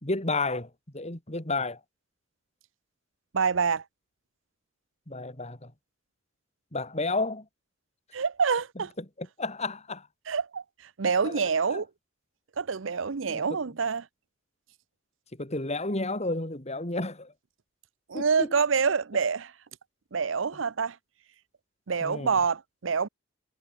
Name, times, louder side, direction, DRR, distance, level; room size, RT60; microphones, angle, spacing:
voice 1, 0.0-1.8 5.1-5.7 6.7-7.4 9.0-10.1 11.2-11.4 11.7-11.8 13.3-13.4 15.3-17.3 18.1-18.6 22.0-22.4, left 2 dB, 35° left, 3.1 m, -32 dB
voice 2, 3.3-3.8 8.1-8.9 10.3-10.6 11.0-11.9 12.6-14.1 18.1-19.5 20.1-21.0 21.9-23.1, right 5 dB, 75° right, 0.7 m, -26 dB
head